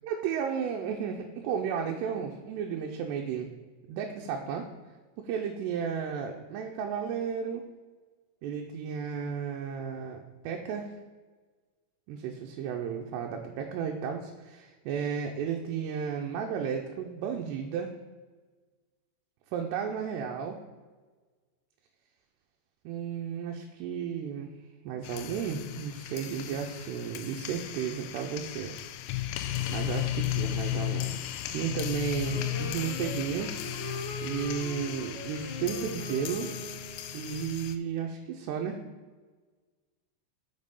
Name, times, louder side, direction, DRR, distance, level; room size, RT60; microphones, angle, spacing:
voice 1, 0.0-3.5 3.9-4.7 5.2-7.7 8.4-11.0 12.1-17.9 19.5-20.6 22.9-24.5 24.9-28.7 29.7-31.2 31.5-33.6 34.2-36.5 37.1-38.8, right 7 dB, 90° right, 2 dB, 2.8 m, -33 dB
sound 1, 25.0-37.8, left 14 dB, 85° left, 2.5 m, -35 dB
Wind instrument woodwind instrument, 32.2-37.2, right 1 dB, 40° right, 2.5 m, -41 dB
6.6 x 5.3 x 5.2 m, 1.4 s
omnidirectional pair, 4.7 m